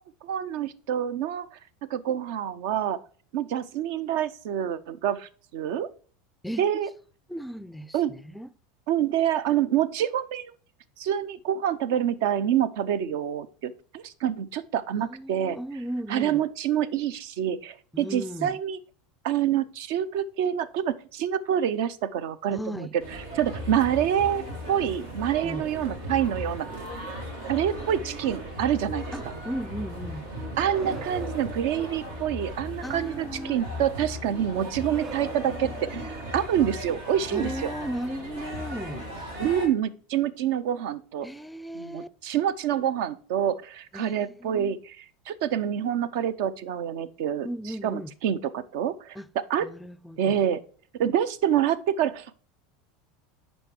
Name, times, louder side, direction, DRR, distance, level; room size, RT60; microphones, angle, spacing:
voice 1, 0.2-1.5 1.9-3.0 3.3-5.9 6.6-6.9 7.9-8.1 8.9-10.5 11.0-15.6 16.1-18.8 19.2-26.7 27.4-29.1 30.6-37.7 39.4-41.3 41.7-47.5 47.8-49.7 50.2-50.6 51.0-52.3, right 10 dB, 65° right, 0.6 m, -27 dB
voice 2, 7.3-8.5 15.0-16.4 17.9-18.6 22.5-22.9 25.4-25.7 29.1-30.3 32.8-33.6 37.3-39.1 41.2-42.1 43.9-44.8 47.4-48.1 49.2-49.3 49.6-50.4, equal, 5° left, 0.5 m, -36 dB
sound 1, 23.0-39.7, equal, 85° right, 2.0 m, -37 dB
sound 2, 30.6-32.6 34.7-36.8, right 6 dB, 40° right, 2.3 m, -43 dB
7.9 x 5.4 x 4.4 m
hypercardioid pair, 90°, 0 cm